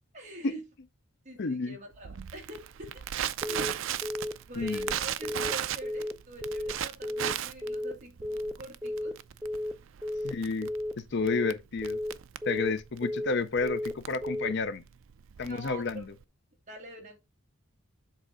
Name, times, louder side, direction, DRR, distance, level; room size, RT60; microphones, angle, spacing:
voice 1, 0.1-0.7 1.2-3.0 3.4-3.8 4.5-9.2 11.2-11.5 12.5-12.8 15.4-16.2 16.7-17.2, right 1 dB, 35° right, 2.3 m, -45 dB
voice 2, 1.4-1.8 4.6-4.9 10.2-10.7 11.0-12.0 12.5-14.8 15.4-16.1, left 4 dB, 50° left, 0.5 m, -31 dB
Crackle, 2.0-16.2, right 10 dB, 60° right, 0.4 m, -37 dB
Telephone, 3.4-3.7 4.0-4.3 4.6-4.9 5.2-5.5 5.8-6.1 6.4-6.7 7.0-7.3 7.6-7.9 8.2-8.5 8.8-9.1 9.4-9.7 10.0-10.3 10.6-10.9 11.2-11.5 11.8-12.1 12.4-12.7 13.0-13.3 13.6-13.9 14.2-14.5, left 1 dB, 5° right, 0.5 m, -33 dB
7.5 x 3.6 x 4.9 m
head